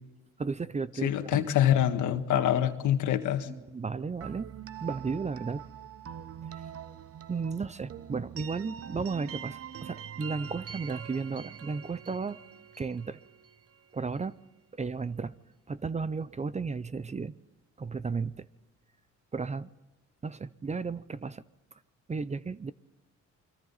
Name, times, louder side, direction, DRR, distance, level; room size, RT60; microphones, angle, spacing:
voice 1, 0.4-1.5 2.3-2.4 3.5-4.5 4.8-5.7 7.3-12.4 12.8-13.2 13.9-14.4 14.8-15.3 15.7-17.4 17.8-18.5 19.3-19.7 20.2-21.4 22.1-22.7, right 4 dB, 25° right, 17 dB, 0.6 m, -34 dB
voice 2, 1.0-3.5, left 11 dB, 85° left, 7 dB, 1.6 m, -25 dB
sound 1, 4.2-14.0, right 9 dB, 50° right, 1.1 m, -44 dB
28.5 x 23.0 x 4.1 m, 1.1 s
cardioid pair, 90°, 30 cm